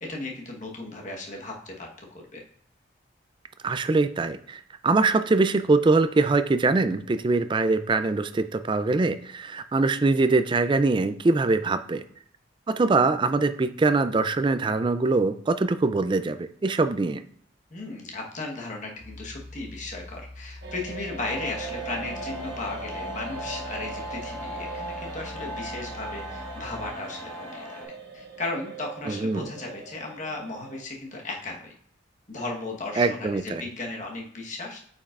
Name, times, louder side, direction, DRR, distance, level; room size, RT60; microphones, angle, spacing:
voice 1, 0.0-2.1 2.3-2.4 17.7-31.7 32.3-34.8, left 2 dB, 40° left, 0 dB, 1.2 m, -36 dB
voice 2, 3.6-12.0 12.7-17.2 29.1-29.5 33.0-33.6, right 3 dB, 25° right, 11 dB, 0.3 m, -23 dB
sound 1, 19.0-26.9, left 1 dB, 85° right, 1.5 m, -44 dB
sound 2, 20.6-30.8, right 3 dB, 55° right, 1.2 m, -41 dB
sound 3, 21.2-27.8, right 1 dB, 15° left, 1.3 m, -38 dB
8.7 x 5.3 x 2.4 m, 0.64 s
head